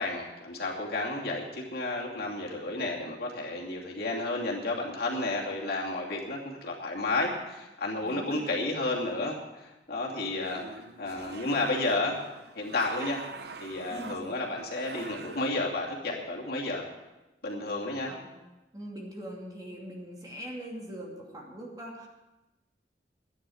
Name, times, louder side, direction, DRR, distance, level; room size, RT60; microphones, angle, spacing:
voice 1, 0.0-12.2 12.5-13.2 13.6-16.9 17.4-18.1, left 2 dB, 60° left, -2 dB, 2.8 m, -32 dB
voice 2, 8.0-8.5 13.9-14.2 18.0-18.4 18.7-22.1, right 1 dB, 20° right, -1 dB, 2.6 m, -42 dB
sound 1, 10.2-15.5, right 4 dB, 65° right, 0.8 m, -45 dB
13.0 x 10.0 x 7.1 m, 1.0 s
head